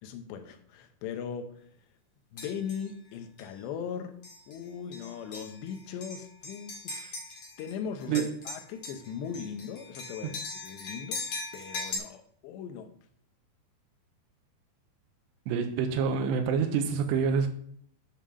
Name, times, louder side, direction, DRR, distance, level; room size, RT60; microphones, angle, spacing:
voice 1, 0.0-1.6 2.3-4.2 4.5-7.2 7.6-11.2 11.5-12.9, left 7 dB, 80° left, 3.1 m, -39 dB
sound 1, 2.4-2.9 3.4-3.5 4.2-4.6 4.9-7.7 8.0-12.0, left 3 dB, 45° left, 2.2 m, -40 dB
voice 2, 15.5-17.5, right 6 dB, 85° right, 3.0 m, -27 dB
8.5 x 5.6 x 6.3 m
omnidirectional pair, 5.0 m